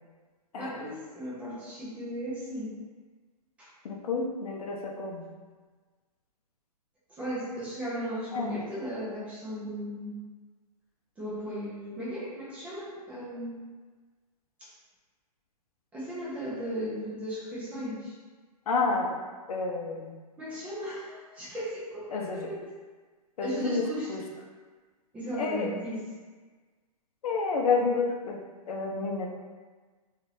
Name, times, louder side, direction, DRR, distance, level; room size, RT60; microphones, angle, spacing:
voice 1, 0.6-2.8 3.6-3.7 7.1-10.2 11.2-13.6 14.6-14.7 15.9-18.1 20.4-22.7 23.4-24.1 25.1-26.0, equal, 5° right, -9 dB, 0.3 m, -36 dB
voice 2, 3.8-5.3 8.3-8.6 18.7-19.2 19.5-20.1 22.1-22.5 23.4-23.8 24.1-24.2 25.4-25.7 27.2-28.4 28.7-29.3, left 4 dB, 65° left, 0 dB, 0.6 m, -29 dB
2.5 x 2.4 x 3.2 m, 1.4 s
hypercardioid pair, 155°, 21 cm